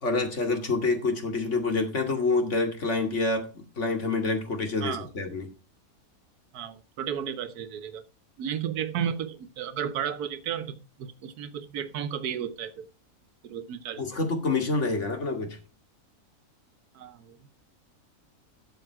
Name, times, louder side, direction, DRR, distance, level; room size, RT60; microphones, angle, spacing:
voice 1, 0.0-5.5 14.0-15.6, left 3 dB, 50° left, 2.5 m, -27 dB
voice 2, 6.5-8.0 8.4-12.9 13.4-14.0 16.9-17.4, right 8 dB, 90° right, 1.3 m, -33 dB
12.5 x 7.3 x 4.6 m
omnidirectional pair, 1.6 m